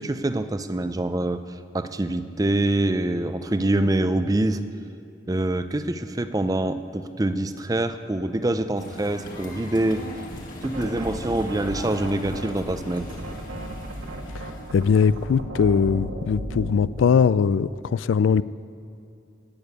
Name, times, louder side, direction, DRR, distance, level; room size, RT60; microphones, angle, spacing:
voice 1, 0.0-4.6 5.3-10.1 10.6-13.1, right 1 dB, 20° right, 11 dB, 0.5 m, -25 dB
sound 1, 8.7-15.3, left 1 dB, 45° left, 2.2 m, -40 dB
sound 2, 10.3-17.0, right 1 dB, 80° right, 1.7 m, -35 dB
voice 2, 14.7-18.4, left 6 dB, 75° left, 18 dB, 0.3 m, -20 dB
17.5 x 6.9 x 9.4 m, 2.7 s
head